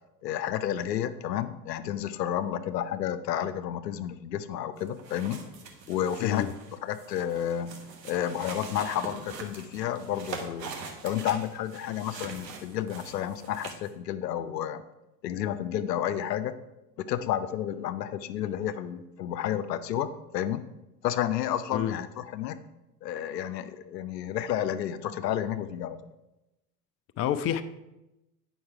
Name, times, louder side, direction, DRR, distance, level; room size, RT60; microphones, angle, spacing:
voice 1, 0.2-5.4 5.9-6.5 6.8-7.8 8.0-10.7 11.0-14.8 15.2-16.5 17.0-20.1 20.3-20.6 21.0-22.6 23.0-26.0, left 10 dB, 75° left, 12 dB, 0.7 m, -31 dB
sound 1, 4.8-13.9, right 4 dB, 80° right, 1.4 m, -43 dB
voice 2, 6.2-6.5 21.7-21.9 27.2-27.6, left 10 dB, 30° left, 10 dB, 0.5 m, -28 dB
8.7 x 5.6 x 4.7 m, 0.95 s
figure-of-eight pair, 80°, 50 cm